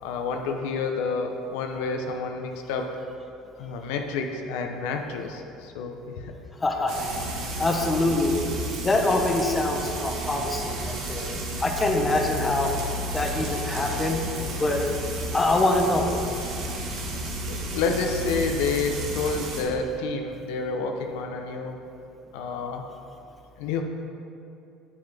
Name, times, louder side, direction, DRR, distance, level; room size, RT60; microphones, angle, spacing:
voice 1, 0.0-2.9 3.6-6.3 17.5-21.8 22.3-22.8 23.6-23.8, left 4 dB, 85° left, 4 dB, 0.6 m, -29 dB
voice 2, 6.6-7.0 7.4-8.4 8.8-11.3 11.6-12.7 13.1-14.2 14.5-14.8 15.3-16.1, left 2 dB, 20° left, 2 dB, 0.8 m, -24 dB
Frying (food), 6.9-19.6, right 1 dB, 65° right, 1.4 m, -32 dB
7.7 x 6.9 x 3.4 m, 2.7 s
supercardioid pair, 110°, 0 cm